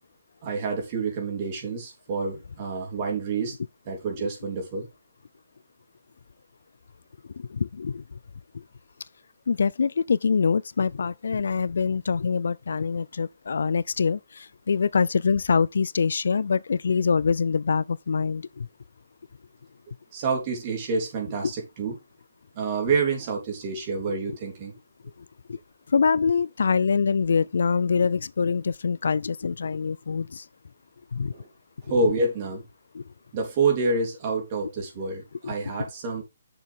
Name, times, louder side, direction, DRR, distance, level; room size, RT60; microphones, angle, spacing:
voice 1, 0.4-3.5 3.9-4.9 20.1-21.9 22.6-24.7 31.3-31.5 31.9-32.6 33.3-36.2, right 4 dB, 30° right, 3.5 m, -28 dB
voice 2, 7.4-8.0 8.5-8.6 9.5-18.7 24.1-24.2 25.5-25.6 25.9-30.4 31.1-31.3 32.9-33.0 35.4-35.5, left 5 dB, 70° left, 0.4 m, -24 dB
8.3 x 6.8 x 3.6 m
hypercardioid pair, 165°, 0 cm